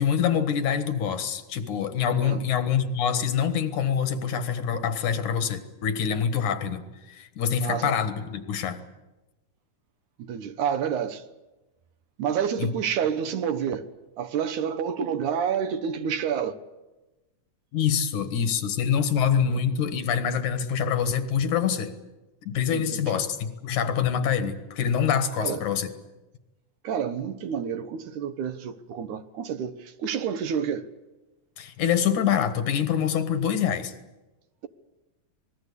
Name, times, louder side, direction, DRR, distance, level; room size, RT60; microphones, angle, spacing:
voice 1, 0.0-6.8 7.1-8.8 12.6-12.7 17.7-21.9 22.4-25.9 31.6-33.9, left 8 dB, 85° left, 3.1 m, -25 dB
voice 2, 7.6-8.0 10.2-11.2 12.2-13.9 14.2-16.6 22.7-23.2 25.4-25.7 26.8-30.9, right 8 dB, 90° right, 2.7 m, -29 dB
26.0 x 20.0 x 8.4 m
omnidirectional pair, 3.4 m